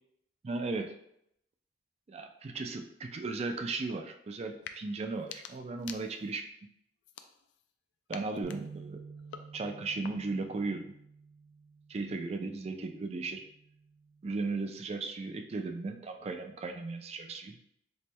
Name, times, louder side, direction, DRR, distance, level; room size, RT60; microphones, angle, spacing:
voice 1, 0.4-1.0 2.1-6.5 8.1-9.0 9.5-10.9 11.9-13.4 14.2-17.6, right 3 dB, 35° right, 5 dB, 0.3 m, -36 dB
sound 1, 4.5-4.8 5.1-6.5 7.0-7.7 8.1-10.5, left 8 dB, 75° left, 0.3 m, -49 dB
sound 2, 8.4-14.7, right 4 dB, 75° right, 0.9 m, -51 dB
4.3 x 3.1 x 2.2 m, 0.75 s
head